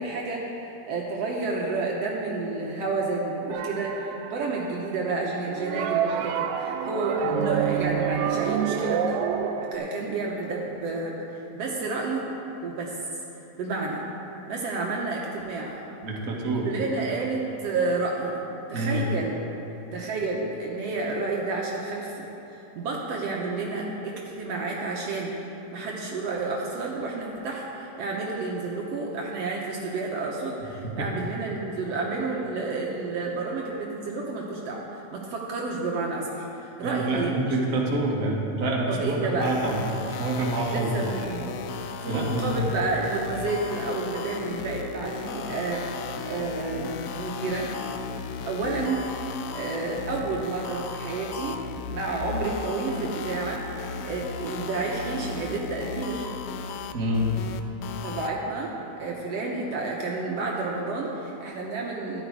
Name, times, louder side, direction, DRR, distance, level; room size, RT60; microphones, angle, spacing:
voice 1, 0.0-9.2 9.7-12.3 12.6-12.9 13.6-14.0 14.5-15.8 16.6-18.4 18.7-19.3 19.9-37.6 38.9-39.5 40.7-41.5 41.8-45.8 46.2-47.7 48.4-49.1 49.5-51.6 51.9-56.3 58.0-62.2, right 3 dB, 65° right, -2 dB, 1.9 m, -30 dB
sound 1, 3.5-4.9 5.5-9.7, right 8 dB, 85° right, 2.0 m, -27 dB
voice 2, 16.0-16.7 18.7-19.1 31.0-31.1 36.8-40.9 42.1-42.6 56.9-57.3, right 2 dB, 35° right, -3 dB, 1.5 m, -27 dB
sound 2, 39.4-58.3, left 5 dB, 85° left, 1.3 m, -36 dB
13.5 x 10.5 x 4.7 m, 3.0 s
omnidirectional pair, 3.4 m